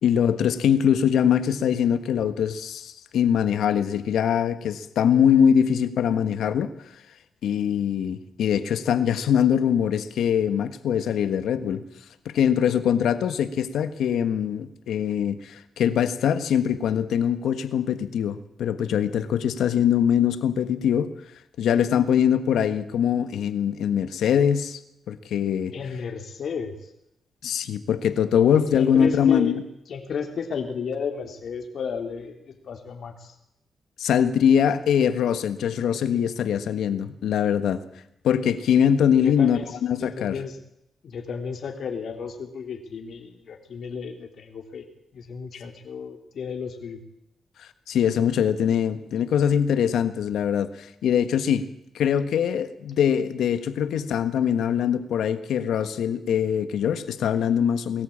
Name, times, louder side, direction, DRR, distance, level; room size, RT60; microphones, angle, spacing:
voice 1, 0.0-6.7 7.4-11.8 12.3-21.1 21.6-24.8 25.1-25.7 27.4-29.6 34.0-37.8 38.2-40.4 47.9-51.7 51.9-58.0, left 8 dB, 90° left, 11 dB, 1.4 m, -22 dB
voice 2, 25.7-26.9 28.7-29.5 29.9-33.3 39.2-40.6 41.0-44.8 45.1-47.0, left 6 dB, 70° left, 4 dB, 3.4 m, -33 dB
21.5 x 14.0 x 8.7 m, 0.81 s
cardioid pair, 85°, 0 cm